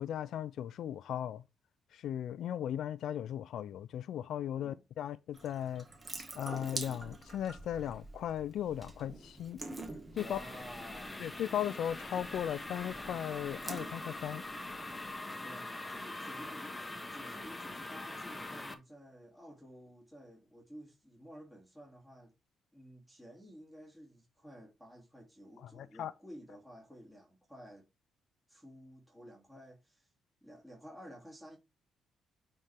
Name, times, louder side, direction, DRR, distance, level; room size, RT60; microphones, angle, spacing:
voice 1, 0.0-1.4 1.9-5.9 6.4-9.6 10.1-10.4 11.2-14.4 25.6-26.1, left 10 dB, 75° left, 0.5 m, -37 dB
Water tap faucet / Sink (filling or washing) / Drip, 5.3-15.1, right 2 dB, 20° right, 2.0 m, -47 dB
sound 1, 10.2-18.7, left 2 dB, 15° left, 1.3 m, -43 dB
voice 2, 10.2-11.3 15.3-22.3 22.7-27.8 28.5-30.1 30.4-31.6, equal, 5° right, 3.2 m, -53 dB
9.1 x 4.4 x 3.7 m
cardioid pair, 90°, 0 cm